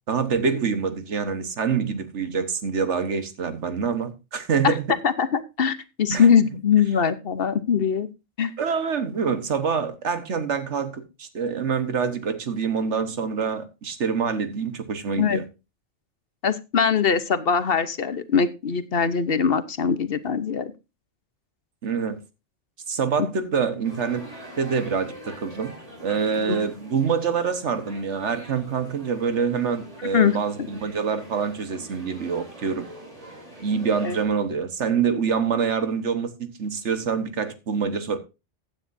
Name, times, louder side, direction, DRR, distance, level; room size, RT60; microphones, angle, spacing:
voice 1, 0.1-4.8 6.1-6.2 8.6-15.4 21.8-22.2 22.9-24.3 24.6-25.7 26.0-32.9 33.6-38.2, right 6 dB, 75° right, 1.6 m, -26 dB
voice 2, 5.0-8.1 8.4-8.5 15.2-15.4 16.4-20.7 23.2-23.3 26.5-26.7 30.0-30.4 34.0-34.2, left 6 dB, 55° left, 1.1 m, -22 dB
sound 1, 23.8-34.2, equal, 30° right, 4.1 m, -44 dB
15.5 x 9.4 x 2.6 m
omnidirectional pair, 1.2 m